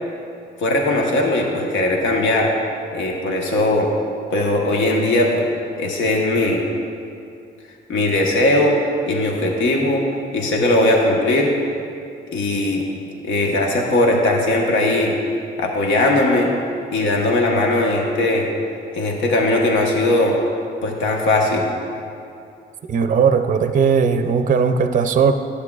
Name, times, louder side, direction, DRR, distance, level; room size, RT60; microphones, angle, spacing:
voice 1, 0.6-2.5 2.9-3.9 4.3-5.4 5.8-6.6 7.9-8.8 9.1-10.0 10.3-11.5 12.3-12.9 13.2-15.2 15.6-16.5 16.9-18.5 18.9-20.3 20.8-21.7, left 2 dB, 75° left, -1 dB, 1.2 m, -19 dB
voice 2, 22.9-25.3, right 6 dB, 40° right, 8 dB, 0.5 m, -17 dB
12.0 x 8.3 x 2.4 m, 2.5 s
cardioid pair, 90°, 20 cm